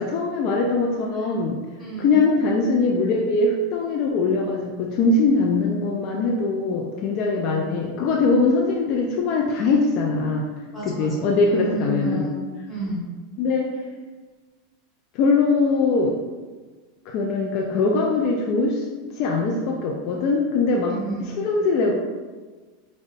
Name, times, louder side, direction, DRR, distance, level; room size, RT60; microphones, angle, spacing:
voice 1, 0.0-1.6 2.0-10.5 10.9-12.2 13.4-13.7 15.1-16.1 17.1-18.9 19.2-20.9 21.4-22.0, left 3 dB, 45° left, 0 dB, 0.3 m, -21 dB
voice 2, 1.8-2.2 7.5-7.8 10.7-13.1 20.9-21.4, right 1 dB, 5° left, -8 dB, 1.1 m, -32 dB
5.0 x 2.1 x 2.6 m, 1.3 s
supercardioid pair, 160°, 0 cm